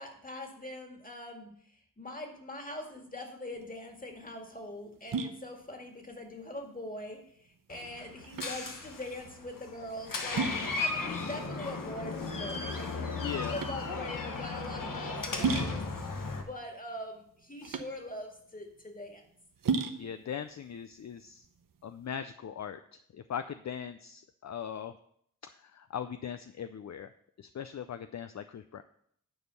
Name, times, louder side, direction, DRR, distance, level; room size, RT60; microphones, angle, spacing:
voice 1, 0.0-10.4 10.8-15.8 16.3-19.2, left 1 dB, 25° left, 2 dB, 2.0 m, -43 dB
sound 1, 3.5-22.1, right 5 dB, 85° right, 0.8 m, -38 dB
Door, 7.7-16.4, left 3 dB, 80° left, 1.3 m, -36 dB
voice 2, 13.2-13.6 20.0-21.5 21.8-24.9 25.4-27.1 27.4-28.8, left 8 dB, 55° left, 10 dB, 0.5 m, -40 dB
9.8 x 4.4 x 6.8 m, 0.67 s
wide cardioid pair, 65°, 32 cm